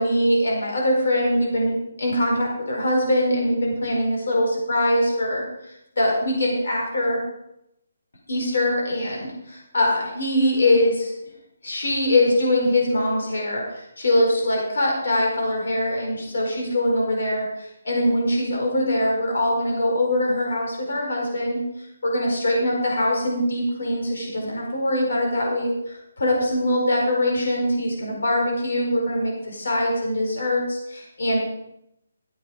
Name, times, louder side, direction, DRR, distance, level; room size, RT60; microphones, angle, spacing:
voice 1, 0.0-7.2 8.3-11.1 11.6-31.4, left 1 dB, 65° left, -1 dB, 4.5 m, -23 dB
13.5 x 8.5 x 5.0 m, 0.82 s
hypercardioid pair, 170°, 0 cm